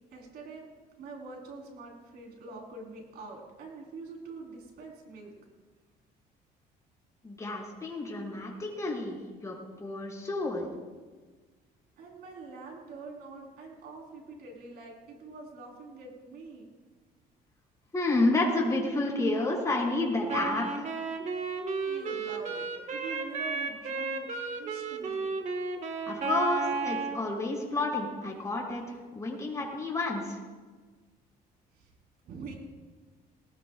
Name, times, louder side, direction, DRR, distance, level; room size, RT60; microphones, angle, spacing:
voice 1, 0.1-0.7 1.0-5.3 12.0-16.7 21.9-24.3 24.6-25.3 31.7-31.9 32.2-32.6, right 3 dB, 70° right, 0 dB, 4.6 m, -45 dB
voice 2, 7.2-10.7 17.9-20.9 26.1-30.4, left 2 dB, 20° left, -4 dB, 5.8 m, -30 dB
Wind instrument woodwind instrument, 20.3-27.2, right 4 dB, 45° right, 1.7 m, -33 dB
19.5 x 19.0 x 2.6 m, 1.4 s
cardioid pair, 110°, 17 cm